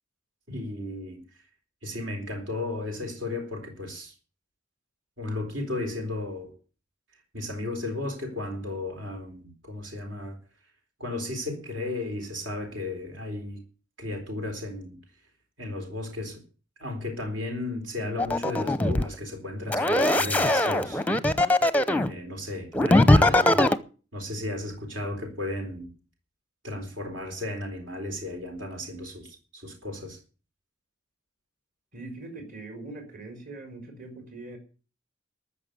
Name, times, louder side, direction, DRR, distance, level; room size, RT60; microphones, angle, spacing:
voice 1, 0.5-1.2 1.8-4.1 5.2-6.5 7.3-10.4 11.0-13.6 14.0-15.0 15.6-16.4 16.8-21.0 22.1-23.6 24.1-25.9 26.6-30.2, left 2 dB, 65° right, 4.1 m, -34 dB
sound 1, 18.2-19.1 19.7-22.1 22.7-23.8, left 1 dB, 10° left, 0.7 m, -21 dB
voice 2, 31.9-34.6, right 2 dB, 45° right, 4.3 m, -41 dB
14.0 x 6.8 x 9.4 m
head